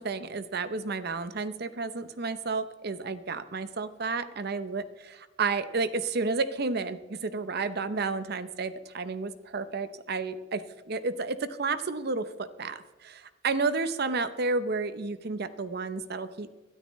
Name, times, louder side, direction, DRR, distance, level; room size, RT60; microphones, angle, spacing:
voice 1, 0.0-10.6 10.9-16.6, right 4 dB, 60° right, 12 dB, 0.8 m, -31 dB
22.0 x 12.5 x 3.2 m, 1.2 s
head